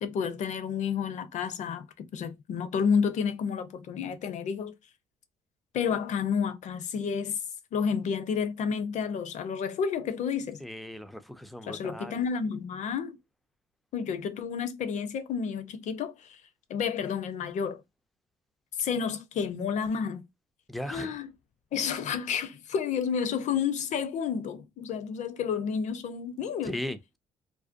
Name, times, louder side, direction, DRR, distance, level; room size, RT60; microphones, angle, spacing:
voice 1, 0.0-1.8 2.1-4.7 5.7-7.4 7.7-10.6 11.6-13.2 13.9-16.4 16.7-17.8 18.8-20.2 20.9-21.3 21.7-26.8, left 6 dB, 60° left, 0.5 m, -30 dB
voice 2, 10.6-12.2 20.7-21.1 26.6-27.2, left 1 dB, ahead, 0.4 m, -37 dB
2.6 x 2.1 x 2.4 m
supercardioid pair, 70°, 14 cm